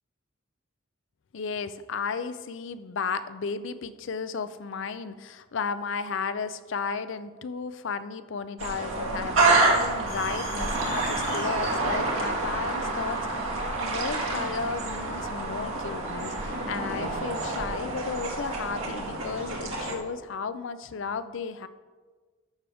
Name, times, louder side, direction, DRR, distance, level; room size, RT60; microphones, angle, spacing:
voice 1, 1.3-21.7, left 5 dB, 65° left, 13 dB, 0.5 m, -34 dB
sound 1, 8.6-19.9, right 2 dB, 80° right, 1.8 m, -28 dB
sound 2, 10.1-14.6, left 3 dB, 80° left, 3.3 m, -44 dB
13.5 x 6.1 x 3.5 m, 1.4 s
head